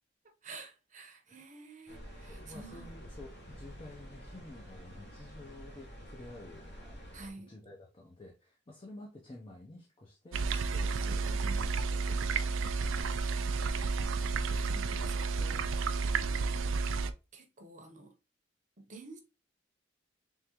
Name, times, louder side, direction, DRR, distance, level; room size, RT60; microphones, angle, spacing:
voice 1, 0.4-2.9 7.1-7.5 10.4-11.7 13.2-13.9 14.5-16.6 17.3-18.1 18.9-19.2, right 3 dB, 40° right, 0.8 m, -50 dB
sound 1, 1.9-7.3, equal, 55° left, 1.2 m, -49 dB
voice 2, 2.2-11.3 11.7-13.0, left 2 dB, 25° left, 0.6 m, -51 dB
sound 2, 10.3-17.1, right 4 dB, 75° right, 0.4 m, -31 dB
3.6 x 3.4 x 2.9 m
head